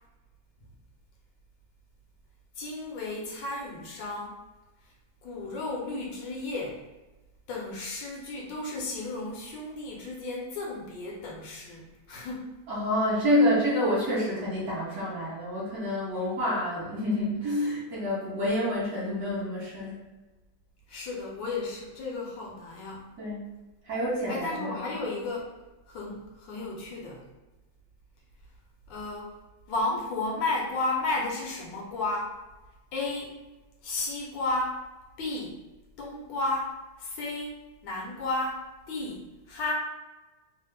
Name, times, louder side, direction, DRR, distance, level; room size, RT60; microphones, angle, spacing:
voice 1, 2.6-4.4 5.2-6.8 7.5-12.5 20.9-23.1 24.3-25.5 25.9-27.2 28.9-29.4 29.7-32.4 32.9-33.5 33.8-34.8 35.2-35.6 36.0-37.6 37.8-39.7, left 2 dB, 75° left, -2 dB, 1.3 m, -33 dB
voice 2, 12.7-20.0 23.2-23.4 23.8-24.9, left 1 dB, 55° right, -7 dB, 1.3 m, -28 dB
3.3 x 2.0 x 3.2 m, 1.1 s
omnidirectional pair, 2.1 m